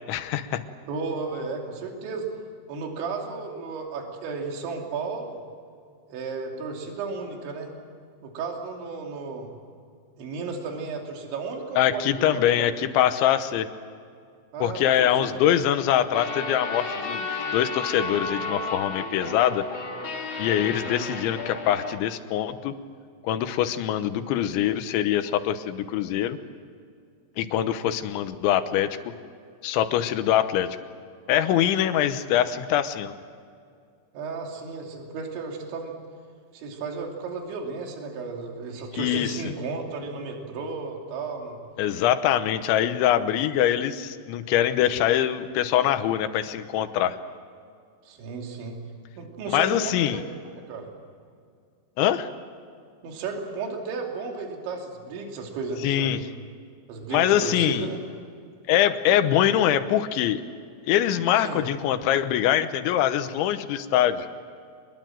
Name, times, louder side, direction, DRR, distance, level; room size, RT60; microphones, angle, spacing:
voice 1, 0.1-0.6 11.8-13.7 14.6-17.3 17.5-19.6 20.4-22.7 23.2-26.4 27.4-29.0 29.6-30.8 31.3-33.1 39.0-39.3 41.8-47.2 49.5-50.2 52.0-52.3 55.8-56.2 57.1-57.9 58.7-60.4 60.9-64.3, left 11 dB, 75° left, 10 dB, 3.2 m, -23 dB
voice 2, 0.9-2.3 2.7-5.4 6.1-7.7 8.2-9.5 10.2-12.9 14.5-15.6 34.1-35.9 36.5-41.6 48.1-48.8 49.2-50.9 53.0-56.1 56.9-58.0 61.4-61.6, right 4 dB, 65° right, 1 dB, 5.0 m, -34 dB
sound 1, 16.1-22.0, left 3 dB, 35° left, 2.4 m, -32 dB
25.5 x 21.5 x 7.6 m, 2.2 s
omnidirectional pair, 5.7 m